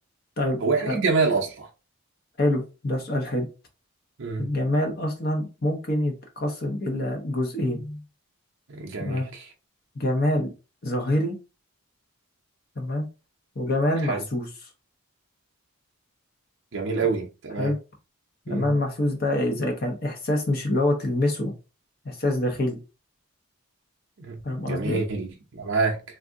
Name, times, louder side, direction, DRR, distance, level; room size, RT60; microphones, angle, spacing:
voice 1, 0.6-1.7 4.2-4.5 8.7-9.5 14.0-14.2 16.7-17.7 18.5-18.7 24.2-26.0, right 4 dB, 55° right, 0.6 m, -27 dB
voice 2, 2.4-3.5 4.4-8.0 9.0-9.3 9.9-10.5 10.8-11.4 12.8-13.1 13.6-14.5 17.6-17.8 18.5-21.5 22.0-22.8 24.4-25.0, left 1 dB, 45° left, 0.8 m, -26 dB
3.4 x 2.5 x 2.5 m
head